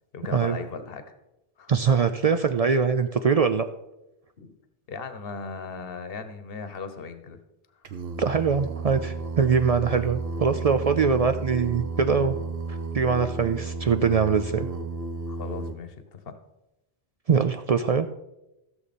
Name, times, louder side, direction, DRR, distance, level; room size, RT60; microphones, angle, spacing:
voice 1, 0.1-1.0 1.6-1.7 4.4-4.5 4.9-7.4 15.3-16.4, left 5 dB, 65° left, 9 dB, 1.2 m, -37 dB
voice 2, 1.7-3.7 8.2-12.4 12.9-14.7 17.3-18.1, right 6 dB, 50° right, 9 dB, 0.4 m, -22 dB
Singing, 7.8-15.7, right 3 dB, 70° right, 1.1 m, -33 dB
15.5 x 6.9 x 4.2 m, 0.93 s
omnidirectional pair, 1.1 m